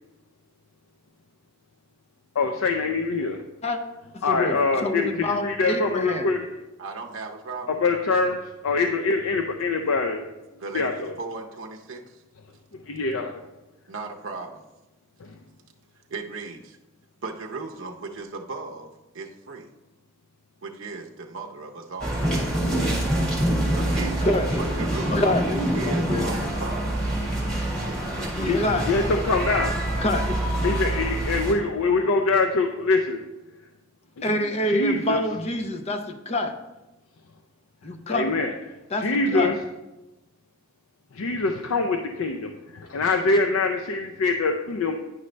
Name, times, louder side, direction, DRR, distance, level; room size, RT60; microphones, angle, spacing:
voice 1, 2.4-3.4 4.2-6.5 7.8-8.4 8.6-10.3 10.7-11.1 12.9-13.4 15.2-15.3 28.9-29.7 30.6-33.2 34.7-35.2 38.1-38.5 39.0-39.5 41.1-45.0, left 3 dB, 85° left, 4 dB, 0.5 m, -24 dB
voice 2, 4.1-6.6 24.2-24.6 25.1-26.3 28.4-29.3 30.0-30.5 31.4-32.2 34.2-36.5 37.8-38.5 38.9-39.7, left 1 dB, 30° left, 7 dB, 0.6 m, -27 dB
voice 3, 6.8-7.8 10.6-12.2 13.9-14.6 16.1-16.8 17.2-19.7 20.6-22.2 23.8-24.3 24.6-27.0 27.8-28.4 29.0-30.1, right 3 dB, 65° right, 2 dB, 0.6 m, -37 dB
sound 1, 22.0-31.5, right 1 dB, 5° left, 1.6 m, -26 dB
9.6 x 5.1 x 3.2 m, 1.0 s
head